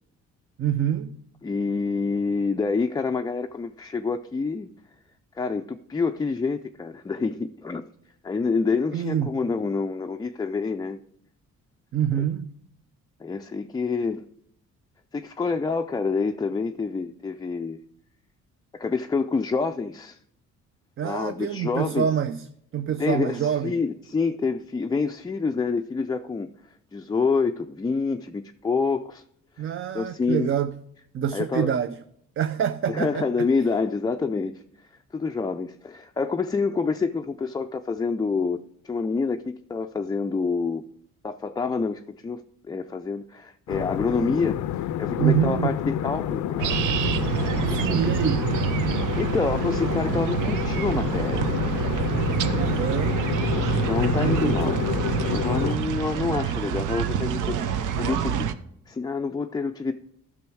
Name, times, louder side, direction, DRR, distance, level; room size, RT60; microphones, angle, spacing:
voice 1, 0.6-1.1 8.9-9.4 11.9-12.5 21.0-22.5 22.7-23.8 29.6-30.8 31.1-32.0 32.4-33.3 45.2-45.8 47.7-48.5 52.5-53.2 54.2-54.8, right 9 dB, 45° right, 0.5 m, -26 dB
voice 2, 1.4-4.7 5.4-7.9 8.2-11.0 13.2-14.3 15.1-17.8 18.7-20.2 21.0-22.1 23.0-26.5 26.9-29.2 29.6-30.5 31.3-31.7 32.9-34.5 35.1-38.6 38.8-40.8 41.2-42.4 42.7-46.8 47.7-48.0 49.2-51.5 53.5-54.8 55.3-58.5 58.9-59.9, left 4 dB, 15° left, 0.3 m, -27 dB
sound 1, 43.7-55.8, left 11 dB, 75° left, 0.5 m, -29 dB
sound 2, 46.6-58.5, right 8 dB, 85° right, 0.7 m, -27 dB
11.5 x 6.2 x 4.6 m
cardioid pair, 90°, 30 cm